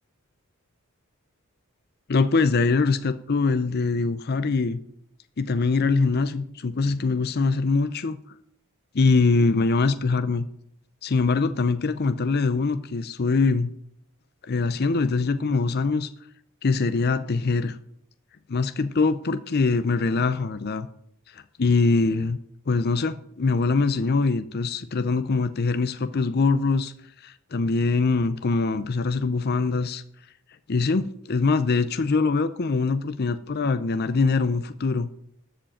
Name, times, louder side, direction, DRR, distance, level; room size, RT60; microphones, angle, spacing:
voice 1, 2.1-4.8 5.4-8.2 8.9-10.5 11.0-13.7 14.5-16.1 16.6-17.8 18.5-20.9 21.3-22.4 22.7-26.9 27.2-30.0 30.7-35.1, left 4 dB, 45° left, 11 dB, 0.5 m, -23 dB
13.5 x 5.2 x 8.8 m, 0.72 s
head